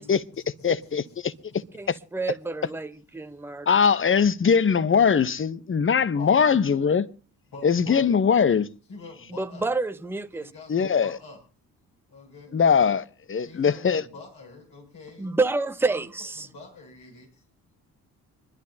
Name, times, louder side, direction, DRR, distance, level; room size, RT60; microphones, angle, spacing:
voice 1, 0.0-1.2 6.1-6.5 7.5-8.1 8.9-9.6 10.4-11.4 12.1-12.6 13.4-15.3 15.9-16.1 16.4-17.4, left 3 dB, 60° left, 7.0 m, -46 dB
voice 2, 0.6-1.6 1.9-2.0 3.7-7.1 7.6-8.7 10.7-11.2 12.5-14.0, left 6 dB, 30° left, 0.9 m, -21 dB
voice 3, 1.7-3.7 9.3-10.5 15.2-16.5, right 3 dB, 5° right, 0.9 m, -28 dB
25.5 x 11.5 x 2.8 m
hypercardioid pair, 45°, 45 cm